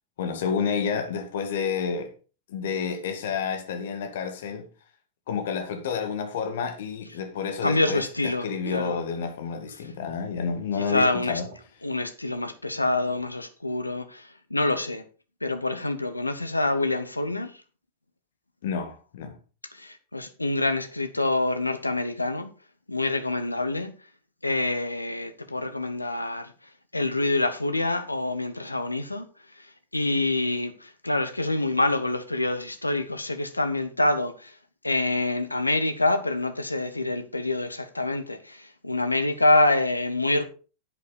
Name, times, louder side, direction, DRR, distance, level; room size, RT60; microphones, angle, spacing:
voice 1, 0.2-2.1 2.5-4.7 5.3-11.5 18.6-19.4, left 6 dB, 60° left, 2.0 m, -30 dB
sound 1, 7.0-9.7 10.0-10.4 10.8-10.9 11.2-11.9 12.6-13.3 14.0-14.1, right 6 dB, 55° right, 3.7 m, -50 dB
voice 2, 7.6-9.0 10.8-11.4 11.8-15.0 15.4-17.5 19.7-22.5 22.9-23.9 24.4-26.5 26.9-29.3 29.9-34.5 34.8-40.4, left 2 dB, 85° left, 0.9 m, -26 dB
11.0 x 8.5 x 4.0 m
figure-of-eight pair, 90°, 0 cm